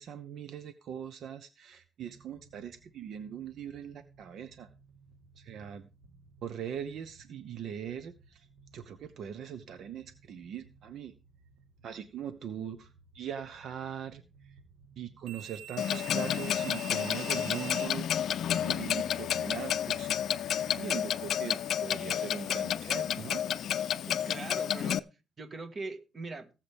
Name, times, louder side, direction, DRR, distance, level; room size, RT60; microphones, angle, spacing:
voice 1, 0.0-4.7 5.4-5.9 6.4-8.5 8.7-11.1 11.8-12.9 13.1-14.2 15.0-18.2 18.6-20.1 20.8-23.4, right 8 dB, 60° right, 0.9 m, -41 dB
sound 1, 2.0-17.9, right 10 dB, 75° right, 1.8 m, -52 dB
Clock, 15.8-25.0, left 10 dB, 55° left, 0.5 m, -31 dB
voice 2, 24.1-25.0 25.4-26.5, right 3 dB, 30° right, 1.6 m, -41 dB
18.5 x 7.4 x 3.5 m
cardioid pair, 145°, 0 cm